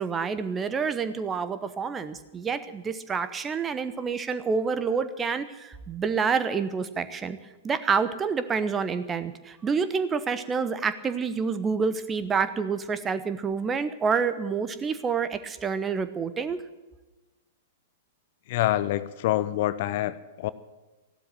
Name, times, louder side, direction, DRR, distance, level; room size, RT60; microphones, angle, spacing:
voice 1, 0.0-7.4 7.6-16.6, right 5 dB, 15° right, 12 dB, 1.0 m, -28 dB
voice 2, 18.5-20.5, left 14 dB, 45° left, 15 dB, 0.7 m, -26 dB
15.5 x 12.0 x 7.6 m, 1.1 s
figure-of-eight pair, 105°, 0 cm